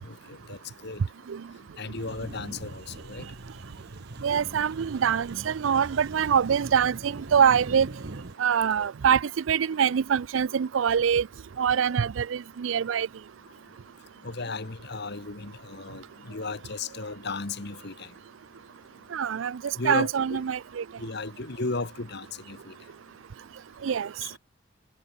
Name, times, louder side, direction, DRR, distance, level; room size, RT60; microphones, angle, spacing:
voice 1, 0.0-1.0 1.8-3.3 14.2-18.1 19.8-20.4 21.0-22.7 24.2-24.3, left 3 dB, 60° left, 1.6 m, -35 dB
sound 1, 2.0-8.4, right 2 dB, 60° right, 1.1 m, -41 dB
voice 2, 4.2-7.9 8.4-11.3 11.6-13.1 19.1-20.8 23.8-24.1, right 7 dB, 85° right, 0.4 m, -24 dB
head